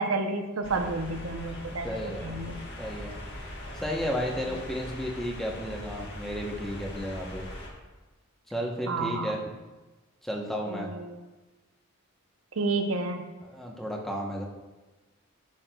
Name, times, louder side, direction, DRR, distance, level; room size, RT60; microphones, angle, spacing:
voice 1, 0.0-1.9 2.2-2.6 8.9-9.4 10.7-11.2 12.6-13.2, right 3 dB, 75° right, 5 dB, 0.7 m, -30 dB
sound 1, 0.6-7.7, left 1 dB, 50° left, 1.4 m, -41 dB
voice 2, 1.8-2.3 2.8-3.2 3.7-7.5 8.5-9.4 10.2-10.9 13.4-14.4, equal, ahead, -1 dB, 0.8 m, -33 dB
11.5 x 6.3 x 2.3 m, 1.2 s
head